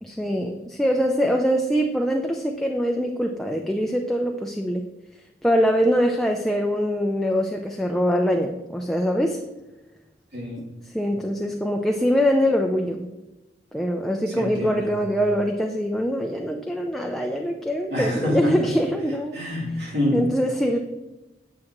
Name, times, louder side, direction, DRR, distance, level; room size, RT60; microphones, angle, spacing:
voice 1, 0.0-4.8 5.4-9.4 10.9-13.0 13.7-19.4 20.1-20.8, equal, ahead, 2 dB, 0.4 m, -23 dB
voice 2, 10.3-10.7 14.3-14.9 17.9-18.5 19.3-20.2, left 1 dB, 70° right, -4 dB, 3.1 m, -27 dB
8.8 x 7.3 x 3.0 m, 1.0 s
head